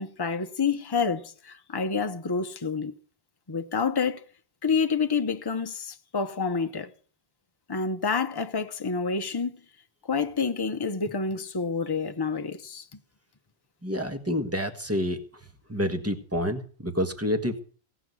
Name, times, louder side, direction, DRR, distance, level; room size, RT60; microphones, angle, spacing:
voice 1, 0.0-3.0 3.5-4.2 4.6-6.9 7.7-9.5 10.1-12.8, left 5 dB, 25° left, 0.9 m, -28 dB
voice 2, 13.8-15.2 15.7-17.6, equal, 15° right, 1.6 m, -28 dB
17.5 x 6.1 x 9.6 m
omnidirectional pair, 1.1 m